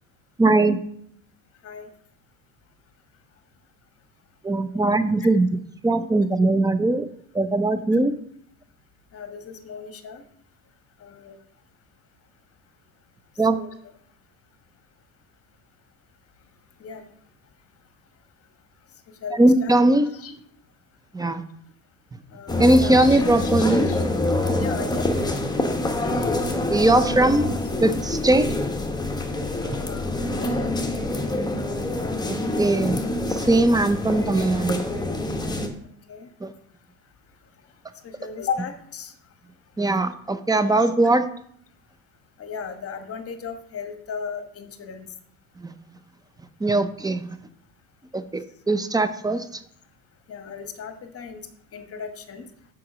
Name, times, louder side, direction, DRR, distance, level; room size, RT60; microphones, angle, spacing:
voice 1, 0.4-0.8 4.4-5.5 5.8-7.1 7.3-8.1 13.4-13.6 19.3-20.1 21.1-21.4 22.6-23.9 26.7-27.5 27.8-28.5 32.3-33.0 33.4-34.8 36.4-36.5 39.8-41.2 45.6-45.7 46.6-47.3 48.1-49.4, right 2 dB, 10° right, 12 dB, 0.6 m, -20 dB
voice 2, 9.1-10.2 11.0-11.4 13.5-13.7 16.8-17.0 19.2-19.8 20.1-20.3 22.3-23.5 23.9-24.0 24.6-25.5 29.6-30.0 30.3-30.8 36.1-36.3 38.0-39.1 40.5-40.9 42.4-45.1 50.3-52.5, left 6 dB, 35° left, 7 dB, 1.3 m, -36 dB
sound 1, 22.5-35.7, left 2 dB, 10° left, 1.2 m, -26 dB
6.0 x 5.0 x 6.1 m, 0.65 s
supercardioid pair, 95°, 40 cm